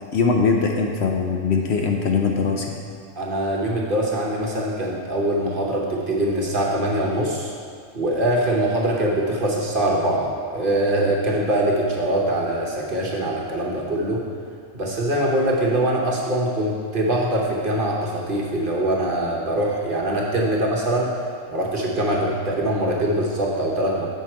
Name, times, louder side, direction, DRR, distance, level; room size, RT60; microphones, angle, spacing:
voice 1, 0.1-2.8, left 5 dB, 60° left, 1 dB, 0.8 m, -21 dB
voice 2, 3.2-7.5 7.9-14.2 14.7-21.1 21.5-24.1, right 1 dB, 45° right, -3 dB, 1.0 m, -23 dB
7.8 x 5.6 x 4.3 m, 2.3 s
omnidirectional pair, 1.4 m